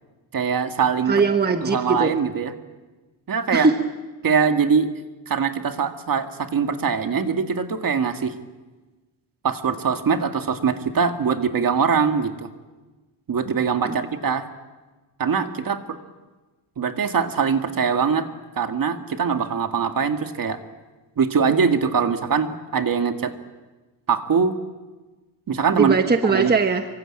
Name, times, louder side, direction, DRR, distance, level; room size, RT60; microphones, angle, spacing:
voice 1, 0.3-1.1 1.6-2.5 3.3-3.7 4.2-4.9 5.3-8.3 9.4-12.5 13.3-14.5 15.2-16.0 16.8-18.3 18.6-20.6 21.2-23.3 24.1-24.6 25.5-26.0 26.3-26.5, right 6 dB, 45° right, 6 dB, 2.0 m, -22 dB
voice 2, 1.1-2.1 3.5-3.8 13.8-14.0 25.7-26.9, right 4 dB, 20° right, 6 dB, 1.2 m, -20 dB
26.5 x 24.5 x 8.9 m, 1.2 s
wide cardioid pair, 145°, 48 cm